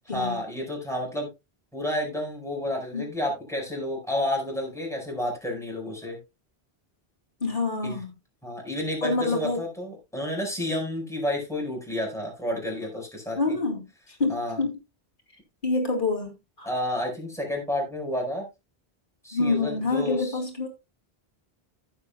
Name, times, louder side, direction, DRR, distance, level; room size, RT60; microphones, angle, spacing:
voice 1, 0.1-1.3 1.7-6.2 7.8-8.0 8.4-13.5 14.3-14.6 16.6-18.4 19.2-20.4, left 1 dB, 5° left, 4.8 m, -30 dB
voice 2, 7.4-8.1 9.0-9.6 13.4-14.7 15.6-16.3 16.6-16.7 19.3-20.7, left 3 dB, 50° left, 2.7 m, -27 dB
15.5 x 7.4 x 2.2 m
omnidirectional pair, 1.1 m